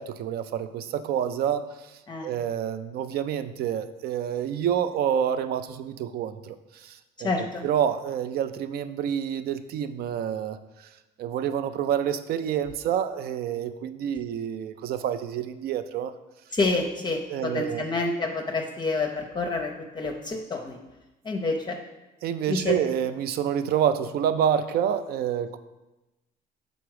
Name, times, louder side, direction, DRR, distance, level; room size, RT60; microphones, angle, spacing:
voice 1, 0.0-1.7 2.2-7.3 7.6-10.9 11.2-16.1 17.3-17.9 22.2-25.6, right 9 dB, 65° right, 12 dB, 0.4 m, -28 dB
voice 2, 7.2-7.6 16.5-20.8 21.2-21.8 22.5-22.8, left 3 dB, 25° left, 3 dB, 0.6 m, -28 dB
5.9 x 4.0 x 4.8 m, 1.0 s
cardioid pair, 110°, 17 cm